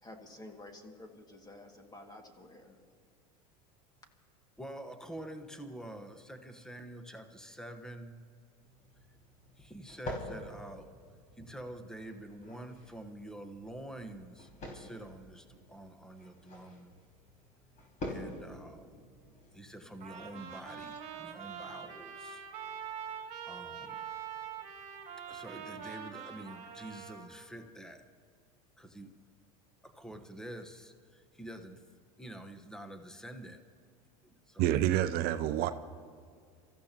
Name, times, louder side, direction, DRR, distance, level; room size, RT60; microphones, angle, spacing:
voice 1, 0.0-2.8, left 1 dB, 20° left, 4 dB, 2.1 m, -51 dB
voice 2, 4.6-8.2 9.6-10.9 11.4-16.9 18.1-19.0 19.5-22.4 23.1-24.0 25.3-28.0 28.8-29.1 29.8-31.8 32.2-33.6 34.2-34.7, right 1 dB, 5° left, 7 dB, 1.2 m, -47 dB
sound 1, 8.6-21.0, left 1 dB, 40° left, 5.0 m, -48 dB
Trumpet, 20.0-27.5, right 8 dB, 35° right, 2.5 m, -44 dB
voice 3, 34.6-35.7, right 12 dB, 50° right, 11 dB, 0.6 m, -28 dB
28.0 x 14.5 x 3.0 m, 2.2 s
hypercardioid pair, 95°, 20 cm